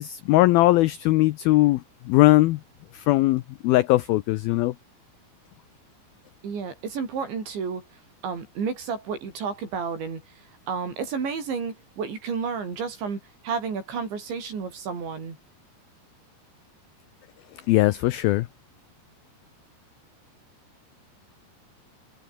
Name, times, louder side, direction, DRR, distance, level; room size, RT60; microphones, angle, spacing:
voice 1, 0.0-2.6 2.9-4.7 17.7-18.5, left 18 dB, 85° left, 2.1 m, -20 dB
voice 2, 6.4-7.8 8.2-10.2 10.7-15.4, right 5 dB, 80° right, 8.3 m, -31 dB
omnidirectional pair, 5.1 m